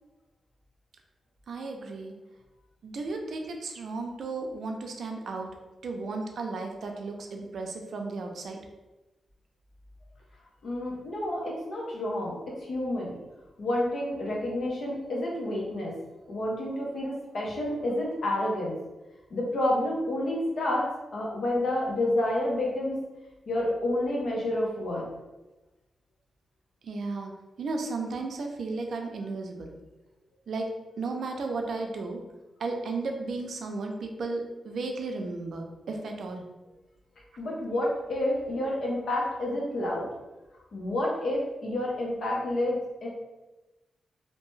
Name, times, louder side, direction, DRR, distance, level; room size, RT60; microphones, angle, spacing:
voice 1, 1.5-2.1 2.8-5.5 5.8-8.6 26.8-27.3 27.6-29.7 30.5-30.7 31.0-32.2 32.6-36.4, right 3 dB, 75° right, 2 dB, 0.4 m, -34 dB
voice 2, 10.6-13.1 13.6-16.0 16.3-18.7 19.3-23.0 23.5-25.1 37.4-40.1 40.7-43.1, left 1 dB, 70° left, -3 dB, 0.8 m, -29 dB
2.7 x 2.2 x 3.1 m, 1.1 s
cardioid pair, 90°, 0 cm